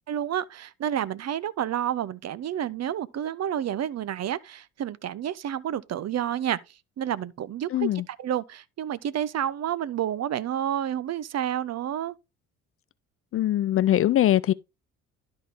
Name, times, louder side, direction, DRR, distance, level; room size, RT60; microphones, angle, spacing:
voice 1, 0.1-6.6 7.0-12.2, right 10 dB, 45° right, 0.7 m, -30 dB
voice 2, 7.7-8.0 13.3-14.5, left 12 dB, 40° left, 0.4 m, -22 dB
12.0 x 4.4 x 3.5 m
hypercardioid pair, 55°, 38 cm